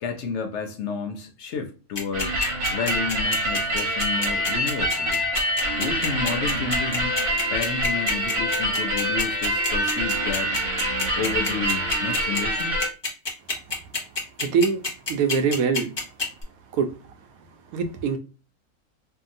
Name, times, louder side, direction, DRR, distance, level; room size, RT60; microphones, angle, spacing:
voice 1, 0.0-2.4 2.7-5.3 5.8-7.1 7.5-10.5 11.2-12.7, left 5 dB, 65° left, 0.8 m, -31 dB
sound 1, 1.9-16.4, left 3 dB, 25° left, 0.6 m, -27 dB
sound 2, 2.1-12.9, equal, 50° right, 0.9 m, -25 dB
voice 2, 14.4-14.8 15.1-15.9 16.8-16.9 17.7-18.2, right 5 dB, 85° right, 1.0 m, -23 dB
2.8 x 2.6 x 2.5 m
omnidirectional pair, 1.4 m